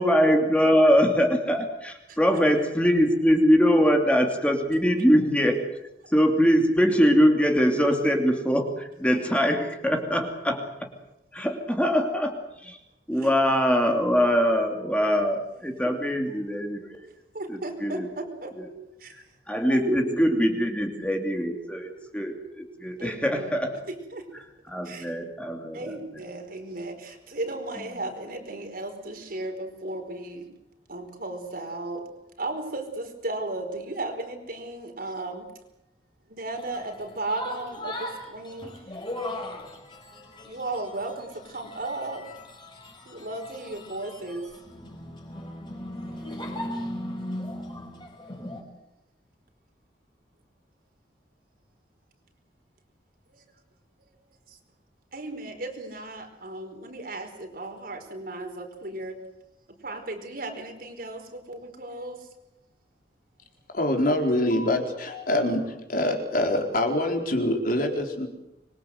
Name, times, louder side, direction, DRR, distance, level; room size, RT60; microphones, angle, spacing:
voice 1, 0.0-5.6 6.1-10.9 11.3-12.8 13.1-17.0 17.5-18.1 18.6-18.7 19.5-23.7 24.7-25.9, equal, 5° left, 3 dB, 2.8 m, -23 dB
voice 2, 17.3-18.5 19.0-19.2 19.7-20.2 23.0-24.3 24.8-25.2 25.7-30.5 30.9-32.1 32.4-35.5 36.3-38.8 40.4-42.2 43.0-44.5 46.0-46.4 53.3-53.4 54.5-54.6 55.1-59.2 59.8-62.3, right 2 dB, 55° right, 4 dB, 4.8 m, -35 dB
sound 1, 36.5-48.6, left 1 dB, 25° left, 5.5 m, -38 dB
voice 3, 63.7-68.3, left 1 dB, 55° left, 3 dB, 4.3 m, -25 dB
25.5 x 23.0 x 8.0 m, 0.87 s
head